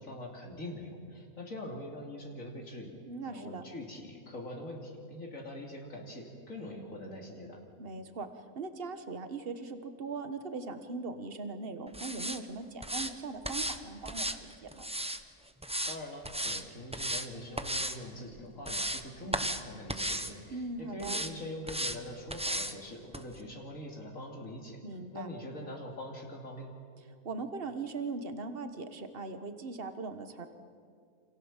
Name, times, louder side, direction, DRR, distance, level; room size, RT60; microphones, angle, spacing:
voice 1, 0.0-3.0 3.2-7.6 15.9-24.8 25.1-26.7, left 1 dB, 65° left, 0 dB, 3.2 m, -43 dB
voice 2, 3.1-3.6 7.8-8.3 8.5-14.9 20.5-21.2 24.8-25.3 27.2-30.5, right 3 dB, 40° right, 8 dB, 1.7 m, -40 dB
sound 1, 11.9-12.4 12.8-13.1 13.4-13.8 14.1-15.2 15.6-16.0 16.2-16.6 16.9-17.3 17.6-18.0 18.4-19.0 19.3-19.6 19.9-20.3 21.0-21.3 21.7-22.0 22.3-22.7 23.1-23.2, right 1 dB, 5° right, 1.0 m, -34 dB
28.5 x 27.5 x 7.4 m, 2.2 s
omnidirectional pair, 1.5 m